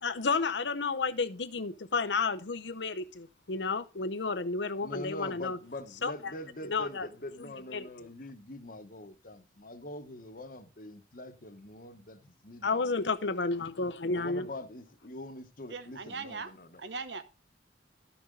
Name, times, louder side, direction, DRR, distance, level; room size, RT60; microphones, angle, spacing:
voice 1, 0.0-5.6 6.0-6.3 6.7-7.1 7.4-7.9 12.6-14.5, left 4 dB, 80° left, 0.9 m, -31 dB
voice 2, 4.8-13.0 14.1-16.8, left 1 dB, 50° left, 1.2 m, -44 dB
voice 3, 15.7-17.2, right 4 dB, 70° right, 1.0 m, -40 dB
13.5 x 6.2 x 3.8 m
head